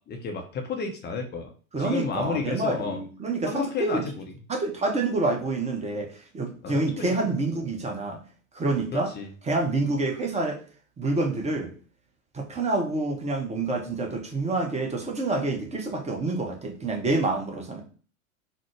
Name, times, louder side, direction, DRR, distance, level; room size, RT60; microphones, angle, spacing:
voice 1, 0.1-1.5 1.8-3.0 3.5-4.1 6.6-7.2 8.9-9.3, left 4 dB, 25° left, 3 dB, 0.6 m, -31 dB
voice 2, 1.7-4.0 4.5-8.2 8.5-9.1 9.4-10.6 11.0-11.7 12.3-17.8, right 2 dB, 15° right, 2 dB, 0.8 m, -27 dB
4.1 x 2.0 x 3.1 m, 0.40 s
hypercardioid pair, 85°, 44 cm